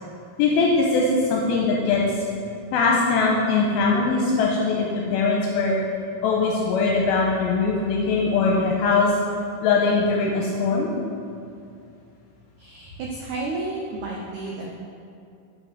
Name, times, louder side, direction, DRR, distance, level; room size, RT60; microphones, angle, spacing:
voice 1, 0.4-2.2 2.7-5.8 6.2-9.2 9.6-10.9, left 4 dB, 80° left, -2 dB, 2.5 m, -21 dB
voice 2, 12.6-14.7, right 2 dB, 85° right, -2 dB, 1.7 m, -31 dB
6.6 x 5.5 x 6.4 m, 2.5 s
omnidirectional pair, 4.5 m